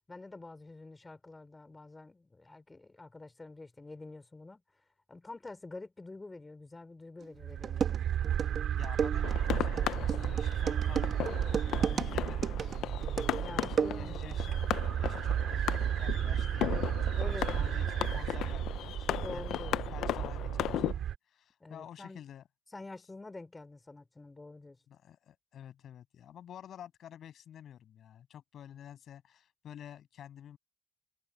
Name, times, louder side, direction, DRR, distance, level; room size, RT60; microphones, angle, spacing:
voice 1, 0.1-4.6 5.1-8.0 13.4-14.2 17.1-17.6 19.2-20.0 21.6-22.2 22.7-24.8, left 3 dB, 20° left, 4.4 m, -47 dB
sound 1, 7.2-7.3 7.6-14.3, right 7 dB, 55° right, 1.5 m, -34 dB
sound 2, 7.4-21.2, right 10 dB, 75° right, 2.2 m, -33 dB
voice 2, 8.7-11.4 11.8-12.9 13.5-14.6 15.0-16.8 17.3-19.4 19.8-22.4 24.9-30.6, left 10 dB, 70° left, 7.5 m, -50 dB
sound 3, 9.2-20.9, left 13 dB, 85° left, 0.7 m, -37 dB
cardioid pair, 90°, 0 cm